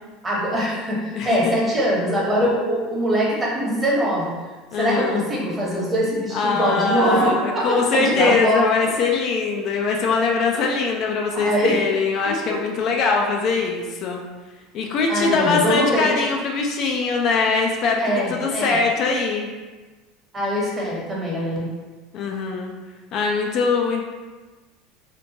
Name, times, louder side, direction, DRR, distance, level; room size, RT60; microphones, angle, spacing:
voice 1, 0.2-4.3 4.7-8.6 10.5-10.7 11.3-11.8 12.3-12.6 15.1-16.1 18.0-18.8 20.3-21.7, equal, 20° right, -4 dB, 1.0 m, -23 dB
voice 2, 4.7-5.2 6.3-14.2 14.7-19.5 22.1-22.7 23.1-24.0, left 4 dB, 50° left, 1 dB, 0.4 m, -22 dB
2.8 x 2.1 x 2.8 m, 1.3 s
hypercardioid pair, 85°, 0 cm